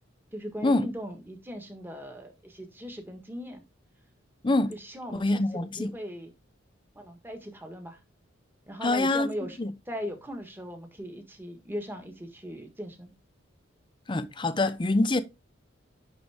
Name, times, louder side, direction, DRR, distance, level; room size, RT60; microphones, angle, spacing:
voice 1, 0.3-3.6 4.7-6.3 6.9-8.0 8.7-9.6 9.9-13.1, equal, 10° right, 1.4 m, -39 dB
voice 2, 5.1-5.9 8.8-9.3 9.6-9.7 14.1-15.2, left 2 dB, 25° left, 0.6 m, -25 dB
10.5 x 3.7 x 3.5 m
head